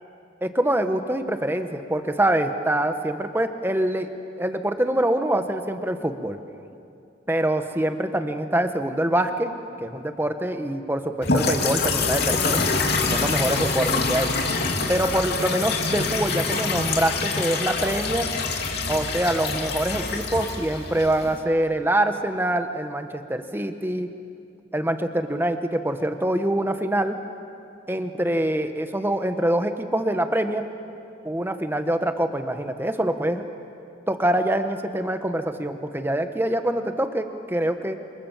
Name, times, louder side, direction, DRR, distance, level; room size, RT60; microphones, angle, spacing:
voice 1, 0.4-4.1 4.4-6.4 7.3-9.5 9.8-12.6 13.1-14.3 14.9-18.3 18.9-24.1 24.7-27.2 27.9-30.7 31.2-33.5 34.1-38.0, right 1 dB, 10° right, 7 dB, 1.3 m, -25 dB
sound 1, 11.2-21.4, left 3 dB, 60° left, 3.2 m, -25 dB
27.5 x 27.5 x 7.5 m, 2.5 s
head